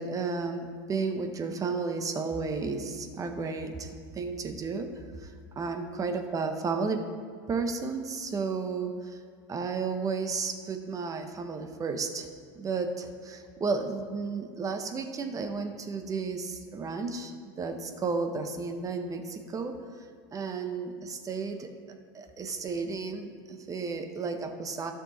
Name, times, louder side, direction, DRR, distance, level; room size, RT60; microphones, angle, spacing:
voice 1, 0.0-4.9 5.2-7.0 7.5-9.2 9.5-12.3 12.5-19.7 20.3-21.7 22.1-24.9, right 4 dB, 25° right, 7 dB, 1.0 m, -33 dB
12.5 x 6.2 x 4.1 m, 2.2 s
supercardioid pair, 105°, 13 cm